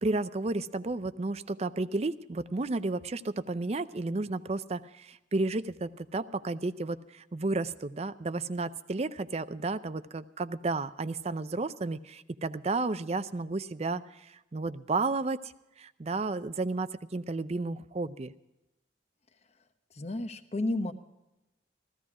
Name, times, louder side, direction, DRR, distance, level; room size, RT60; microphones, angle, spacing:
voice 1, 0.0-18.3, right 3 dB, 35° right, 13 dB, 0.5 m, -32 dB
voice 2, 19.9-20.9, left 2 dB, 35° left, 9 dB, 0.9 m, -31 dB
15.0 x 15.0 x 4.8 m, 0.98 s
head